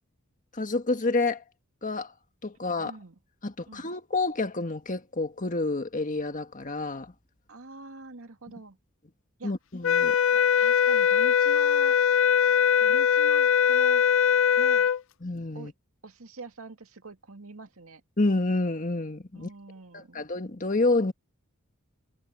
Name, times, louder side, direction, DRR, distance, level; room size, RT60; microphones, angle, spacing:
voice 1, 0.5-1.4 1.8-2.1 2.4-2.9 3.4-7.1 9.4-10.2 15.2-15.7 18.2-19.5 19.9-21.1, left 2 dB, 40° left, 1.6 m, -28 dB
voice 2, 2.8-3.1 3.7-3.9 7.5-8.8 9.4-9.5 10.3-12.0 12.8-14.0 14.6-14.9 15.5-15.7 16.0-18.0 19.3-20.3, right 3 dB, 80° right, 2.2 m, -44 dB
sound 1, 9.8-15.0, left 8 dB, 65° left, 0.5 m, -21 dB
head